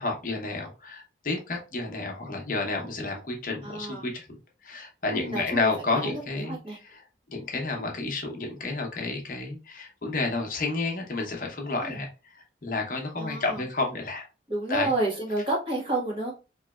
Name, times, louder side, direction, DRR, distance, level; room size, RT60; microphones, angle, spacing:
voice 1, 0.0-4.4 4.6-6.6 6.8-7.0 7.3-12.1 12.6-14.2 14.7-14.9, left 3 dB, 50° left, 1 dB, 0.9 m, -30 dB
voice 2, 3.6-4.1 5.1-6.8 11.8-12.0 13.2-13.6 14.5-16.3, right 2 dB, 30° right, -2 dB, 1.3 m, -30 dB
4.0 x 3.0 x 2.3 m, 0.30 s
head